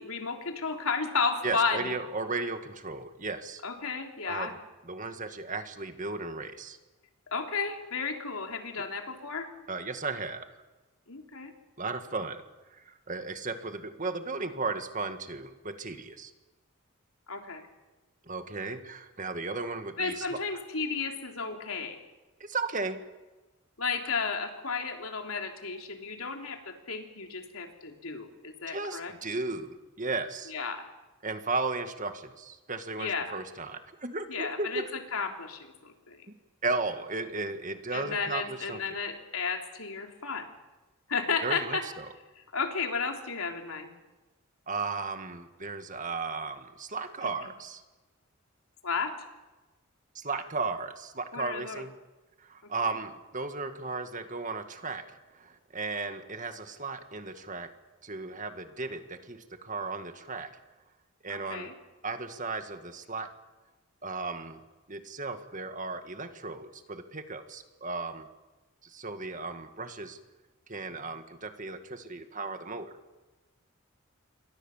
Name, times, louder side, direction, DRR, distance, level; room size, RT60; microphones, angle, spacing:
voice 1, 0.0-1.9 3.6-4.5 7.3-9.5 11.1-11.5 17.3-17.6 20.0-22.0 23.8-29.1 30.5-30.9 33.0-33.4 34.3-36.3 37.9-40.5 41.1-41.8 42.4-43.9 48.8-49.1 51.3-51.8 52.8-52.9 61.3-61.7, left 4 dB, 75° left, 3 dB, 3.4 m, -33 dB
voice 2, 1.4-3.6 4.2-4.6 4.8-6.8 9.7-10.5 11.8-12.4 12.7-16.3 18.3-20.4 22.4-23.0 28.7-30.5 31.2-34.9 36.6-38.8 41.4-42.1 44.7-47.8 50.2-52.0 52.4-57.7 58.0-60.6 61.2-61.7 62.0-63.3 64.0-64.6 64.9-68.3 68.8-70.2 70.7-72.9, right 3 dB, 35° right, 8 dB, 1.9 m, -35 dB
28.5 x 23.5 x 7.3 m, 1.1 s
head